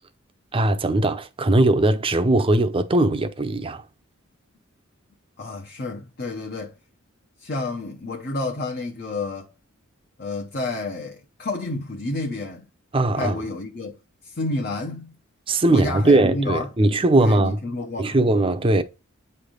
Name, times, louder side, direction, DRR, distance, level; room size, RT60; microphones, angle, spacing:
voice 1, 0.5-3.8 12.9-13.4 15.5-17.6 18.0-18.8, right 2 dB, 25° right, 0.6 m, -19 dB
voice 2, 5.4-6.7 7.4-9.5 10.2-12.7 13.1-14.0 14.2-15.2 15.7-16.7 17.2-18.2, left 2 dB, 45° left, 0.8 m, -30 dB
8.7 x 3.4 x 3.8 m
head